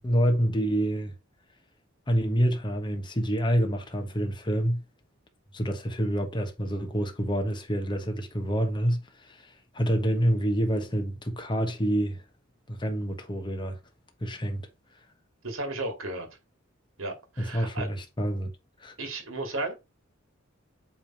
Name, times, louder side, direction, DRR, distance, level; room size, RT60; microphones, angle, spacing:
voice 1, 0.0-1.1 2.1-4.8 5.5-12.2 12.7-13.8 14.2-14.6 17.4-18.5 18.8-18.9, equal, 25° left, 1.3 m, -27 dB
voice 2, 15.4-16.3 17.0-17.9 19.0-19.7, right 2 dB, 80° right, 2.2 m, -34 dB
8.3 x 3.5 x 4.3 m
head